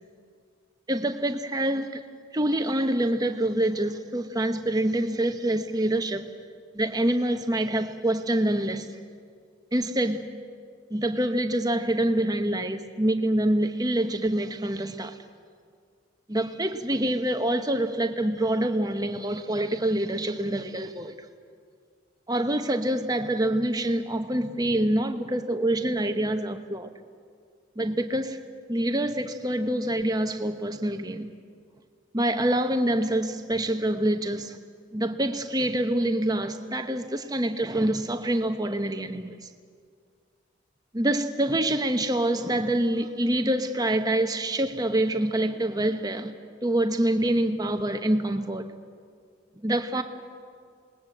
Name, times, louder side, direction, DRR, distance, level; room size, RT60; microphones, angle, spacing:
voice 1, 0.9-2.0 2.3-6.3 6.7-8.9 9.7-10.2 10.9-15.2 16.3-21.1 22.3-26.9 27.8-28.4 28.7-31.3 32.1-34.6 34.9-39.4 40.9-46.3 46.6-48.7 49.6-50.0, right 1 dB, 20° right, 1.1 m, -26 dB
27.5 x 20.0 x 7.9 m
head